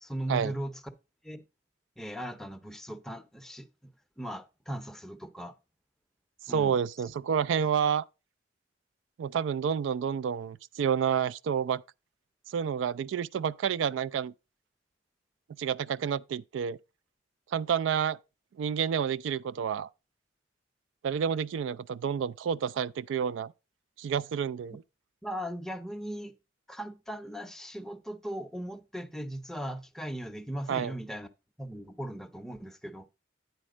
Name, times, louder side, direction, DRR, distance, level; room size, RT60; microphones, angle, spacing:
voice 1, 0.0-0.8 1.2-1.4 2.0-3.9 4.2-5.5 6.5-6.8 25.2-26.3 26.7-31.3 31.6-33.1, right 1 dB, ahead, 0.6 m, -38 dB
voice 2, 6.5-8.0 9.2-11.8 12.5-14.3 15.6-16.8 17.5-18.2 18.6-19.9 21.0-23.5 24.0-24.8 30.7-30.9, right 7 dB, 80° right, 0.3 m, -29 dB
9.2 x 4.3 x 4.9 m
head